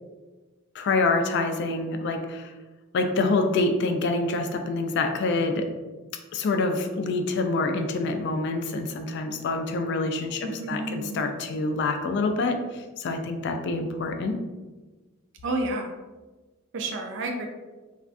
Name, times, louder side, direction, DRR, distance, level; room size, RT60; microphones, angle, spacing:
voice 1, 0.7-2.5 2.9-5.7 6.3-14.4, left 3 dB, 55° left, 5 dB, 0.3 m, -26 dB
voice 2, 10.4-11.3 15.4-15.9 16.7-17.5, right 2 dB, 60° right, 2 dB, 0.4 m, -30 dB
3.4 x 2.4 x 2.4 m, 1.2 s
head